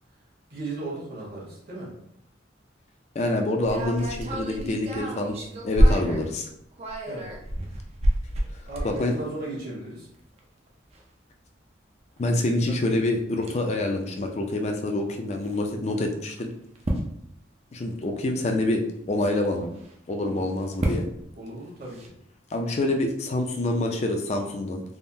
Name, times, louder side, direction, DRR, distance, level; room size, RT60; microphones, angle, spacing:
voice 1, 0.5-1.9 7.1-7.3 8.7-10.1 12.7-12.8 20.2-20.5 21.4-22.1, right 2 dB, 50° right, -5 dB, 1.2 m, -36 dB
voice 2, 3.2-5.4 5.6-6.5 8.8-9.1 12.2-16.5 17.7-18.8 19.1-19.7 20.1-21.1 22.5-24.8, left 2 dB, 35° left, 3 dB, 0.4 m, -26 dB
sound 1, 3.7-6.2 6.6-9.2 10.0-10.1 10.4-10.5 10.9-11.0 12.6-12.8 13.4-13.6 13.9-14.0 15.4-15.6 16.5-17.2 19.5-19.9 20.6-21.2 21.9-22.1, equal, 35° right, 0.4 m, -26 dB
3.5 x 2.1 x 2.6 m, 0.74 s
head